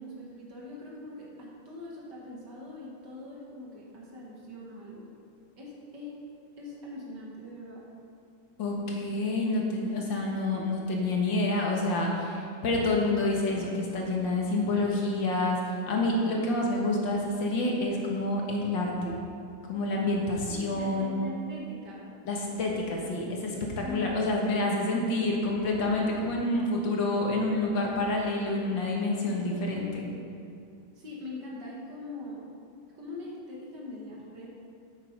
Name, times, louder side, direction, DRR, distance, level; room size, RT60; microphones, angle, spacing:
voice 1, 0.0-5.1 5.6-6.2 6.6-7.9 20.4-22.1 23.8-24.2 31.0-32.4 32.9-34.6, left 1 dB, 55° right, -4 dB, 2.3 m, -42 dB
voice 2, 8.6-19.1 19.7-21.2 22.3-30.1, left 2 dB, 65° left, -1 dB, 2.0 m, -28 dB
8.4 x 8.2 x 5.3 m, 2.5 s
omnidirectional pair, 2.3 m